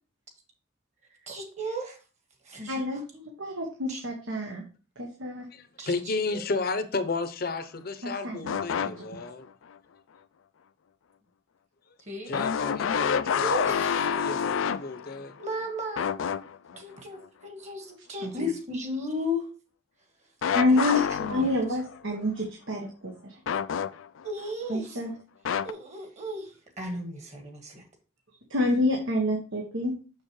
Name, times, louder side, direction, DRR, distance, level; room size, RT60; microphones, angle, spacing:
voice 1, 1.3-1.9 2.5-2.8 3.1-3.2 3.9-4.0 5.8-6.4 12.1-12.4 13.3-14.7 15.4-16.1 16.7-19.5 21.2-21.4 24.2-24.9 25.6-26.4 26.8-27.8, left 1 dB, 35° right, 1.6 m, -35 dB
voice 2, 2.7-3.0 3.4-4.6 5.0-5.5 8.0-8.6 9.0-9.2 18.2-18.4 20.5-21.0 21.3-23.3 24.7-25.1 28.5-29.9, left 2 dB, 85° right, 1.4 m, -28 dB
voice 3, 5.5-9.5 12.3-15.3, left 3 dB, 50° left, 0.7 m, -33 dB
sound 1, 8.5-9.3 9.8-9.9 12.3-15.6 16.0-16.8 20.4-21.9 23.5-24.3 25.4-25.7, left 7 dB, 80° left, 0.4 m, -28 dB
6.5 x 6.5 x 3.1 m
head